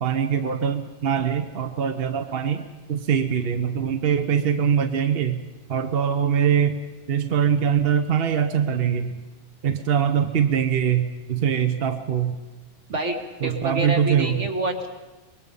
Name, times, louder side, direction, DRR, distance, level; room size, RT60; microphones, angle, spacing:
voice 1, 0.0-5.4 5.7-6.8 7.1-9.2 9.6-12.4 13.4-14.5, right 8 dB, 55° right, 8 dB, 1.1 m, -23 dB
voice 2, 13.4-14.9, right 2 dB, 80° right, 3 dB, 2.3 m, -27 dB
24.5 x 21.0 x 5.5 m, 1.2 s
omnidirectional pair, 1.2 m